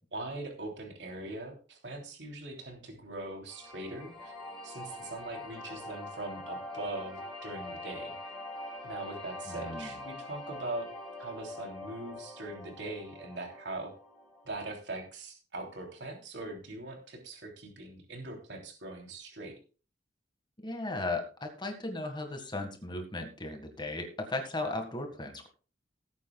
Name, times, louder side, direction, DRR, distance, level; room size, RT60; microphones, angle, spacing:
voice 1, 0.1-4.3 4.6-8.3 8.8-10.9 11.2-13.9 14.4-19.5, right 2 dB, 70° right, 2 dB, 3.2 m, -41 dB
sound 1, 3.5-14.5, left 1 dB, 5° left, 4.8 m, -44 dB
voice 2, 9.5-9.9 20.6-25.5, left 2 dB, 25° left, 5 dB, 1.8 m, -36 dB
18.5 x 9.5 x 2.3 m, 0.36 s
head